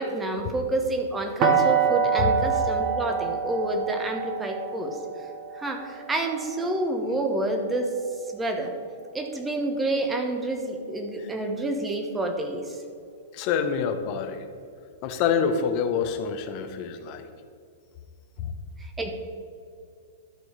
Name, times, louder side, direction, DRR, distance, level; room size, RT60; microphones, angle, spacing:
voice 1, 0.0-5.0 5.5-7.9 8.3-8.7 9.1-12.6 19.0-19.1, right 2 dB, 15° right, 4 dB, 1.2 m, -28 dB
sound 1, 1.4-7.2, right 6 dB, 35° right, 1.3 m, -26 dB
voice 2, 13.3-14.5 15.0-17.3 18.4-18.5, left 7 dB, 40° left, 7 dB, 0.9 m, -27 dB
12.5 x 4.6 x 5.1 m, 2.3 s
figure-of-eight pair, 100°, 0 cm